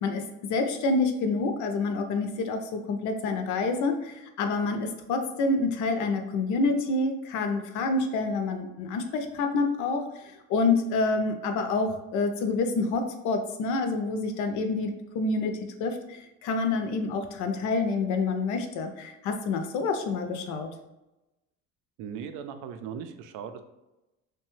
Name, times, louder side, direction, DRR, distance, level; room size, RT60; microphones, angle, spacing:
voice 1, 0.5-20.7, left 3 dB, 65° left, 6 dB, 0.5 m, -28 dB
voice 2, 22.0-23.6, right 7 dB, 75° right, 9 dB, 0.5 m, -38 dB
2.9 x 2.2 x 3.0 m, 0.98 s
cardioid pair, 120°, 32 cm